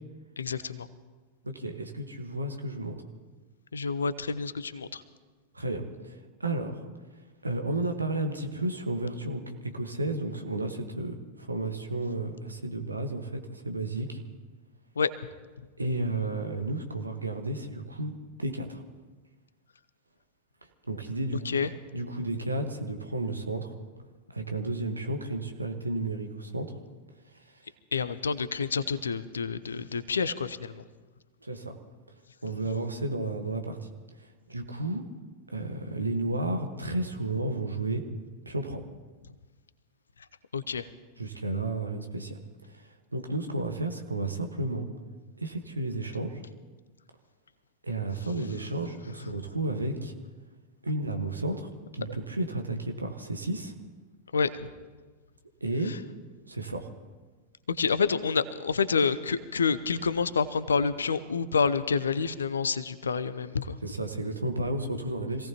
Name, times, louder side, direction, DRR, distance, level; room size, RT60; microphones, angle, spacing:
voice 1, 0.4-0.9 3.7-5.0 15.0-15.1 21.4-21.7 27.9-30.8 40.5-40.9 54.3-54.7 55.9-56.0 57.7-63.8, left 5 dB, 70° left, 15 dB, 0.7 m, -28 dB
voice 2, 1.4-3.0 5.5-6.8 7.4-14.2 15.8-18.8 20.9-21.5 21.9-23.7 24.3-26.7 27.3-27.6 31.4-31.7 32.4-33.8 34.2-35.0 35.5-38.0 38.4-38.8 41.2-44.9 45.4-46.4 47.8-50.1 50.8-53.7 55.6-55.9 56.5-56.9 63.8-65.5, right 2 dB, 80° right, 5 dB, 1.5 m, -32 dB
26.5 x 17.0 x 3.0 m, 1.4 s
figure-of-eight pair, 90°, 0 cm